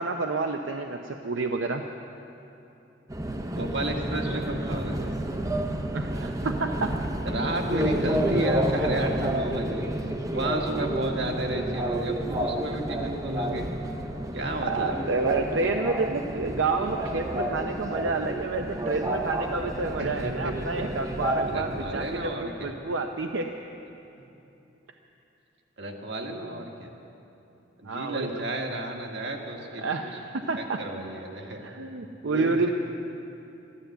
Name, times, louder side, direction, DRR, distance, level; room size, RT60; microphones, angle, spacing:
voice 1, 0.0-1.8 5.9-6.9 14.6-23.5 27.8-28.3 29.8-30.8 31.6-32.7, right 3 dB, 85° right, 4 dB, 0.7 m, -29 dB
Subway metro underground, 3.1-22.3, right 1 dB, 15° right, 0.6 m, -30 dB
voice 2, 3.6-5.2 7.3-13.7 14.3-15.0 20.0-20.6 21.4-22.7 24.2-24.3 25.8-26.9 27.8-30.2 30.6-31.6 32.3-32.7, right 1 dB, 65° right, 2 dB, 1.6 m, -32 dB
13.0 x 12.5 x 7.9 m, 2.9 s
head